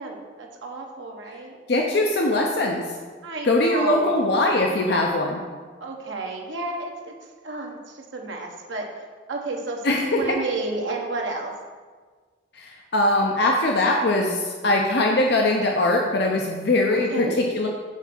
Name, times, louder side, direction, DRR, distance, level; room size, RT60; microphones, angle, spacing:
voice 1, 0.0-1.6 3.2-4.2 5.8-7.1 7.4-8.9 9.3-11.5 16.9-17.3, right 3 dB, 70° right, 1 dB, 1.1 m, -31 dB
voice 2, 1.7-2.8 3.4-5.4 9.8-10.2 12.6-17.7, left 2 dB, 55° left, 1 dB, 0.6 m, -21 dB
5.8 x 4.5 x 5.9 m, 1.5 s
head